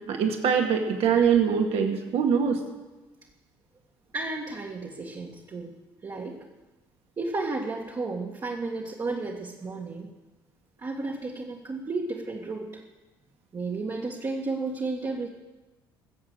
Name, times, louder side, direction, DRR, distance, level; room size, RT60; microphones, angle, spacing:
voice 1, 0.1-2.6, right 7 dB, 55° right, 4 dB, 2.2 m, -23 dB
voice 2, 4.1-6.4 7.2-10.1 10.8-12.8 13.5-15.3, right 3 dB, 30° right, -2 dB, 1.9 m, -33 dB
22.0 x 7.6 x 6.6 m, 1.1 s
figure-of-eight pair, 55°, 12 cm